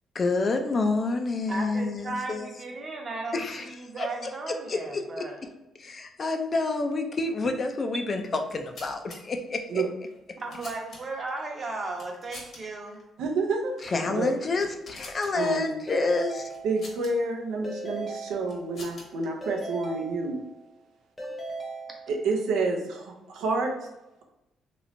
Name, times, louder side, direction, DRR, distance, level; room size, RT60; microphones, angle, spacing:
voice 1, 0.1-2.5 3.3-3.7 4.0-4.1 4.5-5.3 5.8-9.8 13.8-16.5, left 3 dB, 40° left, 5 dB, 0.4 m, -28 dB
voice 2, 1.5-5.4 7.9-8.0 10.4-13.0, right 3 dB, 35° right, 1 dB, 0.8 m, -35 dB
sound 1, 8.4-9.2 10.1-11.3 11.9-12.6 12.9-13.0 13.7-14.0 14.4-15.3 16.5-17.1 18.1-19.3, left 2 dB, 55° left, 1.1 m, -46 dB
voice 3, 13.2-14.3 15.3-15.8 16.6-20.4 22.1-23.7, right 3 dB, 85° right, 2 dB, 0.5 m, -29 dB
Keyboard (musical) / Ringtone, 15.9-17.2 17.6-19.0 19.4-20.8 21.2-22.5, right 2 dB, 10° left, 0.8 m, -39 dB
3.1 x 3.0 x 2.6 m, 0.96 s
cardioid pair, 90°, 0 cm